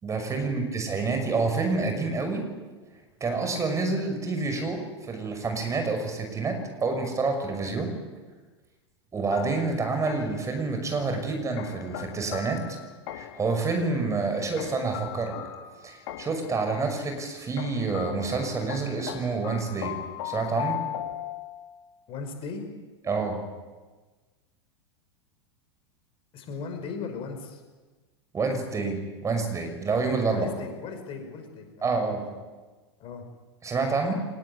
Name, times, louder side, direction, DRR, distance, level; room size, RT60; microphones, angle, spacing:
voice 1, 0.0-2.4 3.2-7.9 9.1-12.8 13.1-15.4 15.8-20.0 20.2-20.8 23.1-23.4 28.3-30.5 31.8-32.2 33.6-34.1, right 3 dB, 20° right, 5 dB, 6.2 m, -28 dB
sound 1, 9.3-10.5 11.6-13.5 14.6-16.5 17.6-21.9, left 12 dB, 55° left, 2.1 m, -38 dB
voice 2, 22.1-22.6 26.3-27.6 30.3-31.9 32.2-32.3 33.0-33.2, left 5 dB, 40° left, 5 dB, 5.7 m, -37 dB
24.0 x 20.5 x 9.8 m, 1.3 s
hypercardioid pair, 95°, 15 cm